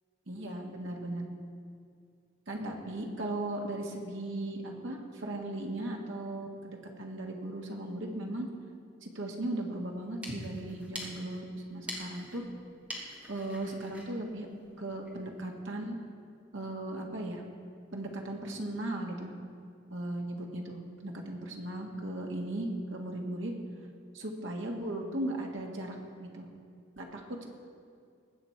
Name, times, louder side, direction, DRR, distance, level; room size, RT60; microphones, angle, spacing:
voice 1, 0.3-1.3 2.5-8.5 9.0-11.4 11.7-12.4 13.3-14.5 14.8-16.0 16.5-17.4 17.9-19.3 19.9-23.5 24.1-26.5 27.0-27.4, right 1 dB, 75° right, 1 dB, 1.7 m, -37 dB
sound 1, 9.9-15.2, equal, 5° right, 1.4 m, -46 dB
20.0 x 8.0 x 4.6 m, 2.3 s
head